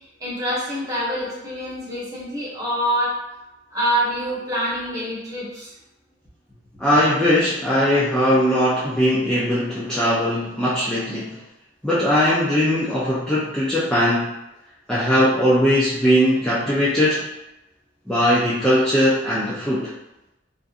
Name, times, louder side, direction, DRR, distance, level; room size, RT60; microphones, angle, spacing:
voice 1, 0.2-3.2 3.7-5.7, equal, 20° right, -7 dB, 0.9 m, -25 dB
voice 2, 6.8-11.4 11.8-14.3 14.9-17.3 18.1-19.9, equal, 5° left, -9 dB, 0.3 m, -19 dB
2.6 x 2.5 x 2.4 m, 0.93 s
head